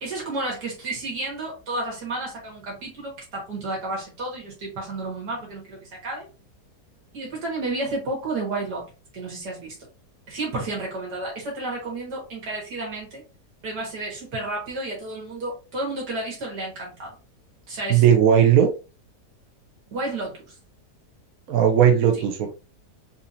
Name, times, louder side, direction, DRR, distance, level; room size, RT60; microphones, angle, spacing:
voice 1, 0.0-6.3 7.1-8.8 9.1-9.8 10.3-13.2 13.6-17.1 17.7-18.0 19.9-20.6, right 2 dB, 85° right, -2 dB, 2.1 m, -31 dB
voice 2, 17.9-18.7 21.5-22.5, right 9 dB, 70° right, 3 dB, 1.1 m, -17 dB
4.2 x 2.9 x 2.6 m, 0.32 s
omnidirectional pair, 1.7 m